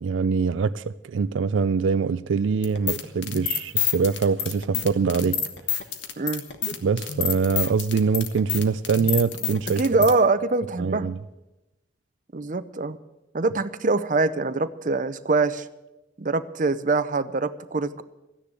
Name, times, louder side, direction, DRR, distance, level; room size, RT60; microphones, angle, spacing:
voice 1, 0.0-5.4 6.8-9.8 10.8-11.2, right 5 dB, 80° right, 0.4 m, -24 dB
sound 1, 2.6-10.1, left 9 dB, 70° left, 1.3 m, -28 dB
voice 2, 9.8-11.1 12.3-13.0 13.3-15.7 16.2-18.0, right 3 dB, 45° right, 0.6 m, -24 dB
13.5 x 9.9 x 8.3 m
head